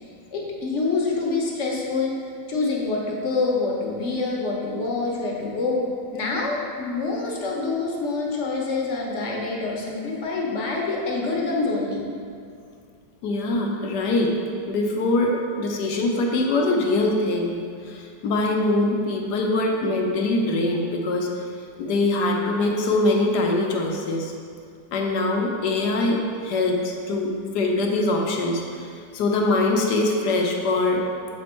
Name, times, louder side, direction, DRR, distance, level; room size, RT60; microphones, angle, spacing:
voice 1, 0.3-2.1 2.5-5.9 6.1-12.0, left 3 dB, 50° left, -2 dB, 1.1 m, -26 dB
voice 2, 13.2-14.3 14.7-21.3 21.8-24.3 24.9-31.0, left 2 dB, 70° left, 1 dB, 1.3 m, -23 dB
7.2 x 4.3 x 4.4 m, 2.3 s
omnidirectional pair, 1.9 m